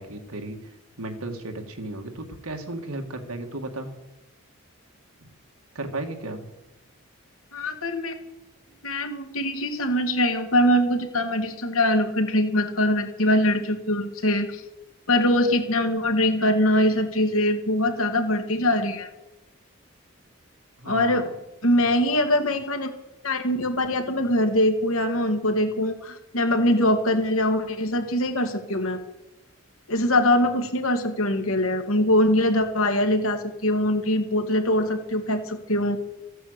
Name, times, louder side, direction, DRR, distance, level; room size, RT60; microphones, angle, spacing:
voice 1, 0.0-3.9 5.2-5.3 5.7-6.5 20.8-21.4, right 2 dB, 85° right, 4 dB, 2.1 m, -35 dB
voice 2, 7.5-8.2 8.8-14.6 15.1-19.1 20.9-21.3 21.6-22.9 23.2-29.0 29.9-36.0, left 1 dB, 75° left, 6 dB, 2.1 m, -23 dB
14.5 x 9.0 x 8.2 m, 0.94 s
head